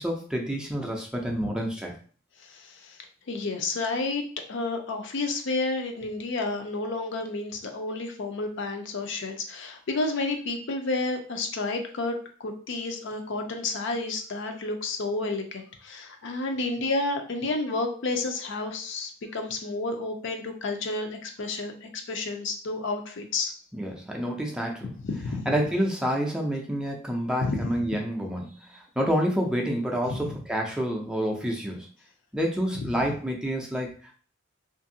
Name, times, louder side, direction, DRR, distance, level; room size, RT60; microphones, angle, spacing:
voice 1, 0.0-1.9 23.7-24.9 25.5-31.9 32.3-34.1, equal, 5° right, 0 dB, 0.4 m, -28 dB
voice 2, 2.5-3.0 3.3-4.2 4.5-23.5 25.0-25.5 27.4-27.8 30.1-30.2, left 3 dB, 65° left, 5 dB, 0.5 m, -31 dB
2.7 x 2.5 x 2.7 m, 0.43 s
head